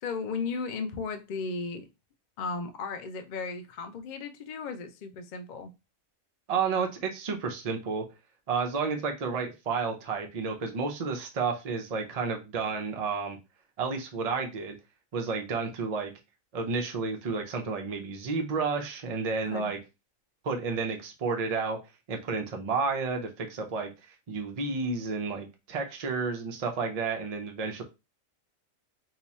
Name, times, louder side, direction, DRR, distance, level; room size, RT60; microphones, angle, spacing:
voice 1, 0.0-1.9 2.4-5.7 19.5-19.7, left 4 dB, 65° left, 0.4 m, -35 dB
voice 2, 6.5-8.0 8.5-13.4 13.8-14.8 15.1-16.1 16.5-19.8 20.4-21.8 22.1-23.9 24.3-27.8, right 4 dB, 65° right, 0.3 m, -31 dB
2.9 x 2.4 x 4.1 m
omnidirectional pair, 1.4 m